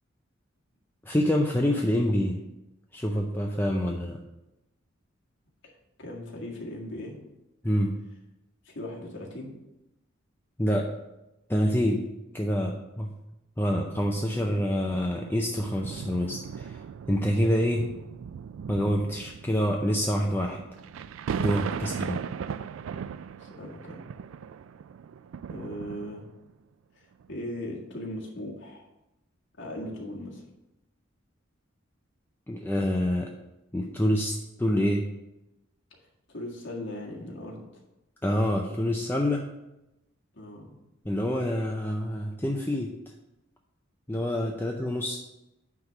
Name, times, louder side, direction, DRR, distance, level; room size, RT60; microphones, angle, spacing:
voice 1, 1.0-2.4 2.9-4.2 7.6-7.9 10.6-10.9 11.5-12.1 12.3-13.1 13.6-17.9 18.7-20.6 21.4-22.2 32.5-33.3 33.7-35.0 38.2-39.5 41.1-42.9 44.1-45.2, equal, 10° left, 0 dB, 0.5 m, -26 dB
voice 2, 6.0-7.2 8.6-9.6 21.7-22.2 23.3-24.0 25.5-26.3 26.9-28.9 29.6-30.5 36.0-37.8 40.3-40.8, left 1 dB, 65° left, -2 dB, 1.8 m, -39 dB
sound 1, 13.7-26.5 27.2-27.3, right 7 dB, 75° right, 0.3 m, -38 dB
9.5 x 3.4 x 6.0 m, 0.93 s
head